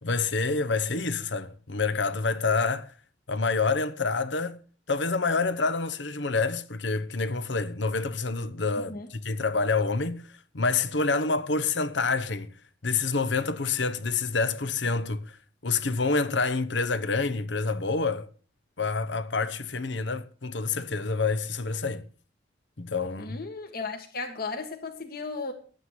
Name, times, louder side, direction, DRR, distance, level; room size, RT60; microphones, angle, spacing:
voice 1, 0.0-2.9 3.3-4.6 4.9-10.2 10.5-12.5 12.8-15.2 15.6-18.3 18.8-22.0 22.8-23.4, left 4 dB, 75° left, 1.1 m, -27 dB
voice 2, 23.2-25.5, left 4 dB, 55° left, 1.8 m, -35 dB
11.5 x 9.1 x 6.7 m
head